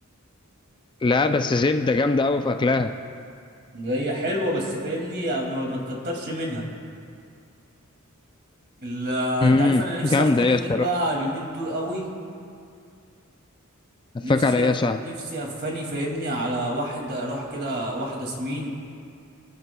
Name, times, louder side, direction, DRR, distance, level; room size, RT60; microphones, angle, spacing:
voice 1, 1.0-2.9 9.4-10.8 14.3-15.0, left 3 dB, 20° left, 7 dB, 0.3 m, -21 dB
voice 2, 3.7-6.6 8.8-12.0 14.2-14.7 15.0-18.7, equal, 50° right, -1 dB, 2.4 m, -28 dB
28.0 x 11.0 x 2.3 m, 2.4 s
head